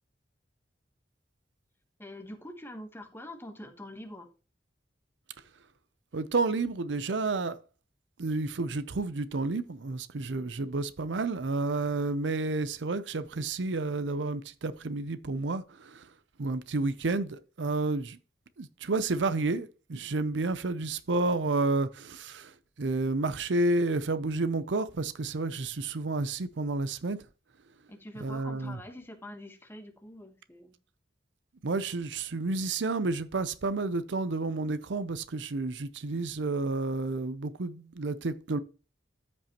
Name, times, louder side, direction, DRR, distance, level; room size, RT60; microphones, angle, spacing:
voice 1, 2.0-4.3 27.9-30.7, left 1 dB, 15° left, 1.2 m, -45 dB
voice 2, 6.1-7.6 8.2-16.1 16.4-18.2 18.6-27.2 28.2-28.8 31.6-38.6, right 3 dB, 75° right, 0.6 m, -30 dB
13.5 x 5.3 x 3.0 m
head